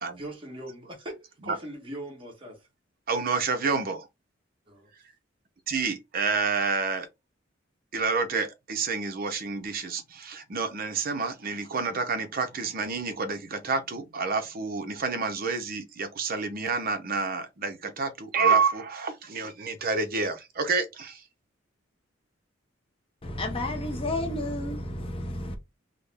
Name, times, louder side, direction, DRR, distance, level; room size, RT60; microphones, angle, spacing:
voice 1, 0.2-2.7 4.7-4.9, right 1 dB, 25° right, 1.3 m, -40 dB
voice 2, 3.1-4.1 5.7-7.1 7.9-21.2, right 4 dB, 50° right, 0.7 m, -28 dB
voice 3, 23.2-25.6, left 1 dB, 30° left, 0.6 m, -31 dB
3.7 x 2.1 x 3.3 m
head